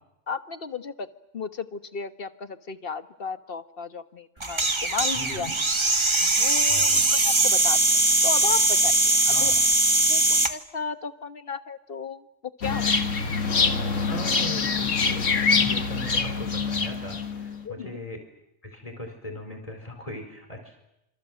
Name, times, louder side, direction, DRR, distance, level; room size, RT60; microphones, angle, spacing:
voice 1, 0.3-1.1 1.3-5.5 6.2-6.9 7.2-7.8 8.2-9.5 10.1-12.2 12.6-13.0 17.6-18.0, left 5 dB, 50° left, 10 dB, 1.4 m, -34 dB
sound 1, 4.4-10.5, right 2 dB, 25° right, 1.3 m, -21 dB
voice 2, 5.2-5.6 6.7-7.0 9.3-9.6 14.1-18.2 18.6-20.8, equal, 30° left, 4 dB, 4.6 m, -39 dB
sound 2, 12.6-17.6, left 4 dB, 85° left, 2.1 m, -25 dB
27.0 x 27.0 x 7.7 m, 0.86 s
omnidirectional pair, 1.3 m